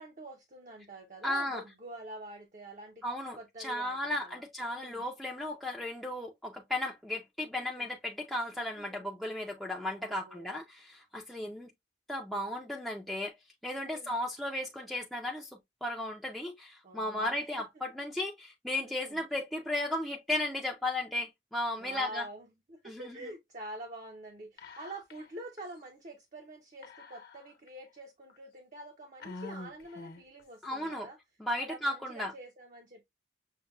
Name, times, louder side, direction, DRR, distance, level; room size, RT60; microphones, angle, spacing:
voice 1, 0.0-3.0 3.3-5.1 7.6-7.9 8.7-9.1 9.9-10.6 13.8-14.2 16.8-17.4 17.7-17.8 18.8-19.2 21.8-31.2 31.6-33.1, right 1 dB, 40° right, 0.6 m, -47 dB
voice 2, 1.2-1.6 3.0-11.7 12.1-13.4 13.6-22.2 22.8-23.0 30.6-31.1 31.4-32.3, left 1 dB, ahead, 0.5 m, -35 dB
Whispering, 24.6-25.3 25.6-25.7 26.8-27.7 28.3-28.4 29.2-30.4, left 3 dB, 55° left, 1.0 m, -46 dB
6.5 x 2.2 x 2.2 m
head